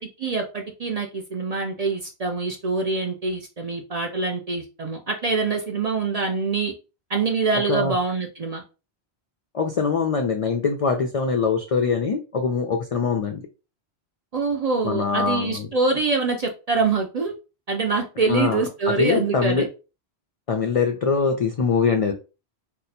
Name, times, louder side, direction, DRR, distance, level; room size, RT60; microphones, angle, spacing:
voice 1, 0.2-6.7 7.1-8.6 14.3-17.3 17.7-19.7, right 4 dB, 50° right, 0.4 m, -25 dB
voice 2, 9.5-13.4 14.8-15.7 18.3-19.7 20.5-22.1, left 5 dB, 65° left, 0.3 m, -23 dB
2.7 x 2.1 x 4.0 m
omnidirectional pair, 1.1 m